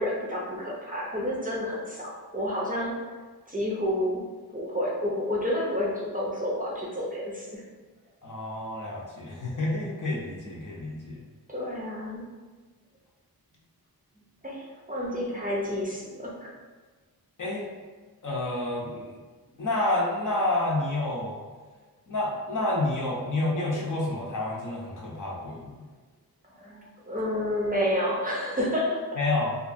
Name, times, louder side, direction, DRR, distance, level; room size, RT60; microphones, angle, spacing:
voice 1, 0.0-2.9 3.5-4.2 4.5-7.6 11.5-12.2 14.4-16.5 26.6-26.8 27.1-29.0, left 1 dB, 25° right, -5 dB, 0.5 m, -30 dB
voice 2, 8.2-11.2 17.4-17.6 18.2-19.2 19.6-21.4 22.1-25.7 29.2-29.6, left 2 dB, 55° left, -3 dB, 0.6 m, -29 dB
2.6 x 2.4 x 2.5 m, 1.4 s
wide cardioid pair, 85°, 38 cm